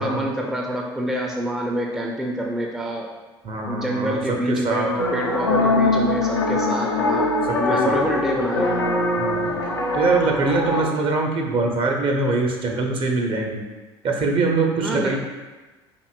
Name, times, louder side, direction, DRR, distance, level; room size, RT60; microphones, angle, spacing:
voice 1, 0.0-3.1 3.7-9.1 14.8-15.2, equal, 5° right, 0 dB, 0.5 m, -27 dB
voice 2, 3.4-4.9 7.7-8.0 9.2-9.5 9.9-13.6 14.0-15.2, right 3 dB, 40° right, 1 dB, 0.7 m, -23 dB
sound 1, 5.0-10.9, left 2 dB, 85° left, 0.5 m, -22 dB
4.6 x 2.6 x 2.4 m, 1.2 s
figure-of-eight pair, 60°, 13 cm